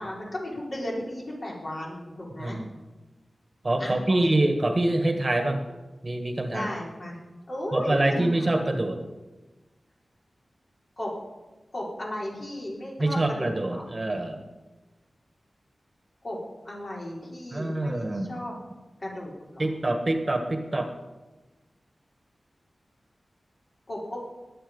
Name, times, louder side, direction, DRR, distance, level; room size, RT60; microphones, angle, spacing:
voice 1, 0.0-2.6 3.8-4.4 6.5-7.2 7.5-8.6 11.0-11.1 11.7-13.8 16.2-16.4 16.6-18.5 19.0-19.6 23.9-24.3, left 1 dB, 50° left, -4 dB, 4.5 m, -35 dB
voice 2, 2.4-2.8 3.6-5.6 6.0-6.7 7.7-9.0 13.0-14.4 17.5-18.4 19.6-20.9, right 2 dB, 35° right, 5 dB, 1.4 m, -25 dB
22.0 x 8.8 x 5.4 m, 1.2 s
wide cardioid pair, 100°, 0 cm